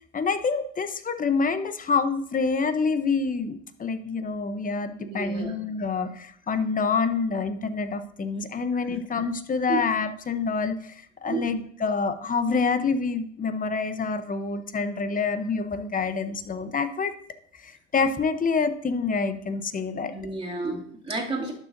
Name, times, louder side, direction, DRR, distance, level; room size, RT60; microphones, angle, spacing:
voice 1, 0.1-17.2 17.5-20.1, left 4 dB, 20° left, 11 dB, 0.8 m, -27 dB
voice 2, 5.0-5.5 9.7-9.8 11.3-11.5 20.1-21.5, right 3 dB, 15° right, -3 dB, 2.7 m, -31 dB
12.0 x 6.9 x 2.7 m, 0.62 s
hypercardioid pair, 85°, 38 cm